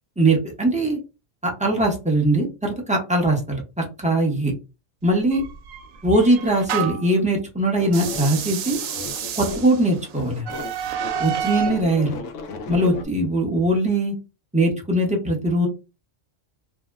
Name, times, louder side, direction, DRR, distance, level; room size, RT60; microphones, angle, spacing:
voice 1, 0.2-1.0 1.4-4.5 5.0-5.5 6.0-8.8 9.4-10.5 11.2-12.2 12.7-14.1 14.5-15.7, right 1 dB, 10° right, 0 dB, 0.6 m, -21 dB
sound 1, 5.3-7.2 7.9-11.8, right 8 dB, 85° right, 1.0 m, -30 dB
sound 2, 7.8-9.9 10.1-13.0, left 4 dB, 85° left, 1.0 m, -35 dB
2.7 x 2.0 x 3.4 m, 0.28 s
omnidirectional pair, 1.3 m